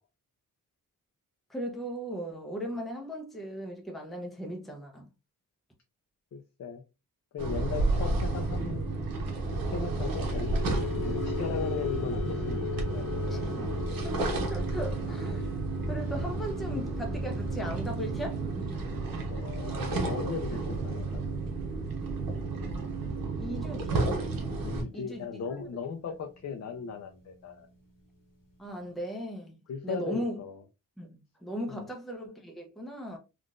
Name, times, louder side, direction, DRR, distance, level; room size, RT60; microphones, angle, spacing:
voice 1, 1.5-5.1 13.3-13.7 14.0-15.5 15.9-18.4 23.4-24.1 24.9-25.6 28.6-29.6 29.8-30.4 31.0-33.2, equal, ahead, 0.6 m, -37 dB
voice 2, 6.3-6.8 7.3-8.9 9.5-12.6 12.9-13.1 19.3-21.2 24.6-27.7 29.7-30.6 31.7-31.9, left 5 dB, 55° left, 0.5 m, -37 dB
sound 1, 7.4-24.8, right 3 dB, 80° right, 1.0 m, -31 dB
sound 2, 9.6-26.0 26.4-26.7 27.0-27.2, left 8 dB, 75° left, 1.2 m, -42 dB
3.7 x 2.5 x 2.3 m
wide cardioid pair, 130°, 34 cm